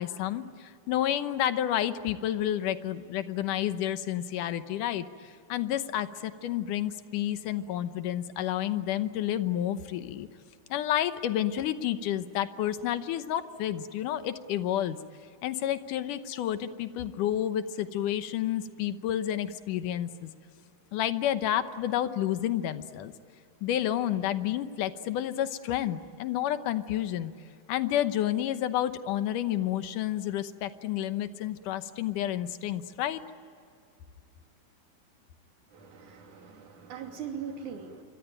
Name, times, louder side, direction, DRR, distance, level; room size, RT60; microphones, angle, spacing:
voice 1, 0.0-10.3 10.7-15.0 15.4-20.3 20.9-23.1 23.6-27.3 27.7-33.2, left 11 dB, 85° left, 11 dB, 2.6 m, -30 dB
voice 2, 35.7-38.0, right 7 dB, 75° right, 3 dB, 4.2 m, -41 dB
27.0 x 24.0 x 9.1 m, 2.4 s
omnidirectional pair, 3.6 m